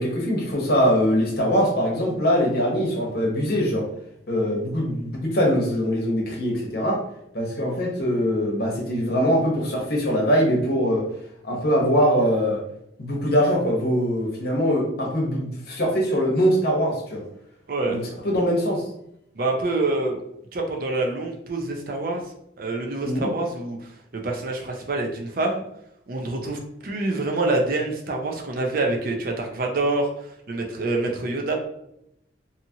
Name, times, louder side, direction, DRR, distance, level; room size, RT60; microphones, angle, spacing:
voice 1, 0.0-3.9 4.3-7.0 7.3-11.1 11.4-12.6 13.0-17.2 17.9-18.8 23.0-23.3, equal, 55° left, -2 dB, 0.9 m, -22 dB
voice 2, 17.7-18.0 19.3-20.2 20.5-22.2 22.6-23.8 24.1-25.6 26.1-31.5, right 2 dB, 50° right, 1 dB, 0.5 m, -26 dB
2.7 x 2.4 x 2.7 m, 0.77 s
head